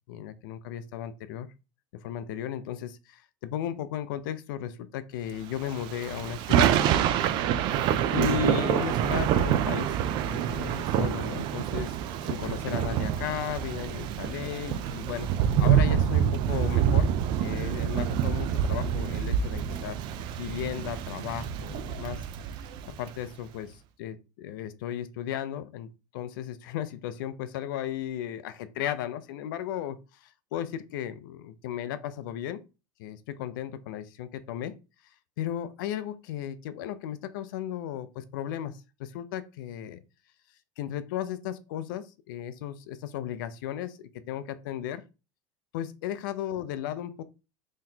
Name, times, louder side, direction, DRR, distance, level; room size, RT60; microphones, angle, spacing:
voice 1, 0.1-1.5 2.0-6.7 7.5-9.9 10.2-12.0 12.2-15.3 15.6-17.1 17.4-20.0 20.4-22.2 23.0-32.6 33.0-34.7 35.4-40.0 40.8-45.0 45.7-47.2, left 10 dB, 80° left, 0.5 m, -35 dB
Thunder / Rain, 5.6-23.1, right 9 dB, 45° right, 0.4 m, -27 dB
3.9 x 3.1 x 2.8 m
supercardioid pair, 145°, 11 cm